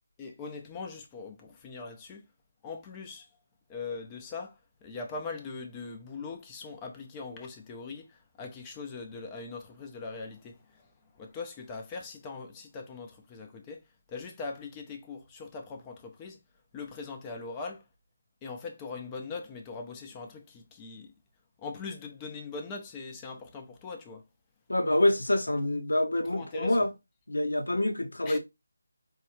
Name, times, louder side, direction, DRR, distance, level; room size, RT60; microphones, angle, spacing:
voice 1, 0.2-2.2 2.6-3.3 3.7-10.9 11.1-13.8 14.1-16.4 16.7-17.9 18.4-21.1 21.6-24.2 26.3-26.9 28.3-28.4, left 4 dB, 15° left, 0.5 m, -41 dB
voice 2, 24.7-26.9 27.3-28.4, left 1 dB, 90° left, 0.7 m, -26 dB
4.5 x 2.2 x 3.0 m
figure-of-eight pair, 170°, 0 cm